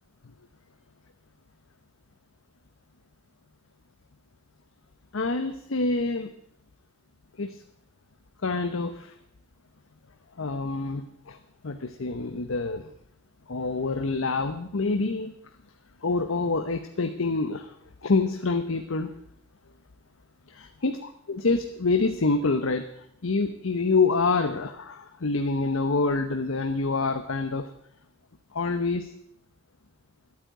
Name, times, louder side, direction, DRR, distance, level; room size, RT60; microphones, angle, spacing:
voice 1, 5.1-6.3 7.4-7.6 8.4-9.1 10.4-11.4 11.6-12.9 13.5-15.3 16.0-17.7 18.0-19.1 20.5-22.9 23.2-27.7 28.5-29.1, left 3 dB, 85° left, 7 dB, 0.9 m, -26 dB
12.0 x 8.7 x 9.0 m, 0.71 s
head